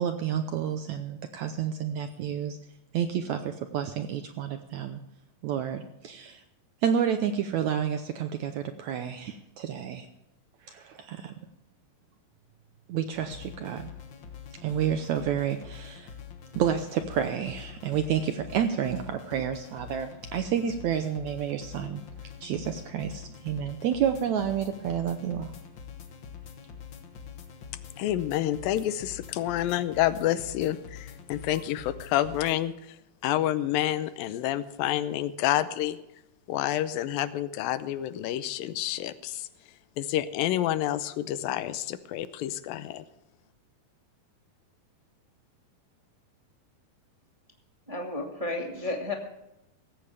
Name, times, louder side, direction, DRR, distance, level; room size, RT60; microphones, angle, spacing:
voice 1, 0.0-2.6 2.9-5.0 5.4-6.4 6.8-10.1 10.7-11.3 12.9-13.9 14.6-16.1 16.5-22.0 22.4-25.5, right 8 dB, 75° right, 8 dB, 1.7 m, -30 dB
sound 1, 13.1-32.6, left 7 dB, 55° left, 1.3 m, -45 dB
voice 2, 28.0-33.0 33.2-36.0 36.5-39.5 40.0-43.0, left 13 dB, 80° left, 13 dB, 2.4 m, -28 dB
voice 3, 47.9-49.1, left 2 dB, 20° right, 1 dB, 1.0 m, -32 dB
17.0 x 15.0 x 3.4 m, 0.87 s
omnidirectional pair, 4.1 m